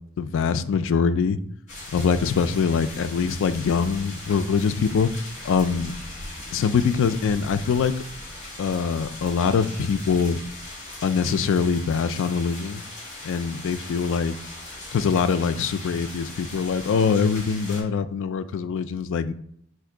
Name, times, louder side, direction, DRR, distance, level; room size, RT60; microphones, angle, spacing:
voice 1, 0.2-1.4 1.9-5.1 5.4-5.9 6.5-7.9 8.6-10.4 11.0-12.8 13.2-14.4 14.9-19.3, left 6 dB, 60° left, 11 dB, 0.3 m, -23 dB
sound 1, 1.7-17.8, left 1 dB, 35° left, 1.8 m, -39 dB
4.4 x 2.5 x 4.8 m, 0.68 s
head